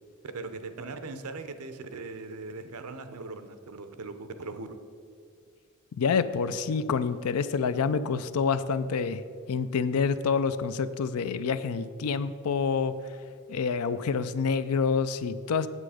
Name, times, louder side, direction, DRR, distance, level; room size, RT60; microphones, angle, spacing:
voice 1, 0.3-4.8, right 3 dB, 80° right, 9 dB, 0.7 m, -39 dB
voice 2, 6.0-9.2 9.5-12.9 13.5-15.7, left 5 dB, 80° left, 13 dB, 0.4 m, -27 dB
8.3 x 7.6 x 4.9 m, 2.3 s
head